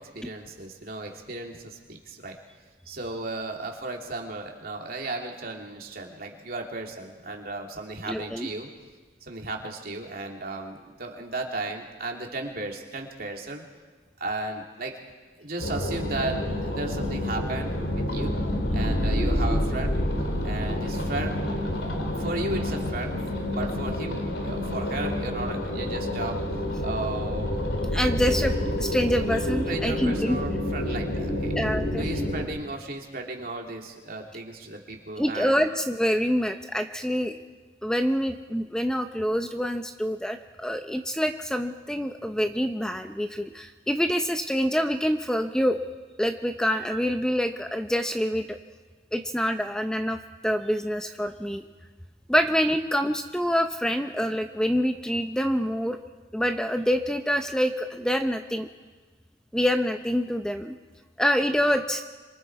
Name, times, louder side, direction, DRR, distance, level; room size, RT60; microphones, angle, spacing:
voice 1, 0.0-2.4 2.9-8.7 9.2-13.6 14.2-15.0 15.4-18.3 18.7-20.0 20.4-21.4 22.2-23.2 23.5-26.4 26.8-27.6 29.7-31.5 32.0-35.6, right 2 dB, 55° right, 1 dB, 2.9 m, -35 dB
voice 2, 8.1-8.5 27.9-30.4 31.6-32.1 35.2-37.3 37.8-45.8 46.2-48.6 49.1-51.6 52.3-56.0 56.3-58.7 59.5-60.7 61.2-62.0, equal, 5° left, 6 dB, 0.7 m, -26 dB
sound 1, 15.6-32.5, left 1 dB, 85° left, 3.1 m, -28 dB
26.5 x 25.5 x 4.8 m, 1.4 s
head